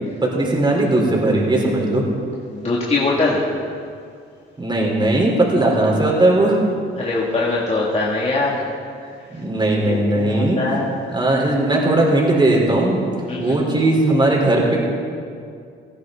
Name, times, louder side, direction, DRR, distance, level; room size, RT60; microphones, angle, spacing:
voice 1, 0.2-2.0 4.6-6.6 9.3-10.6 11.0-13.0 13.4-14.8, right 2 dB, 25° right, -2 dB, 4.2 m, -18 dB
voice 2, 2.5-3.4 7.0-8.6 9.8-11.0 13.3-13.6, left 3 dB, 35° left, -6 dB, 2.6 m, -22 dB
19.0 x 14.5 x 4.0 m, 2.2 s
cardioid pair, 90°, 20 cm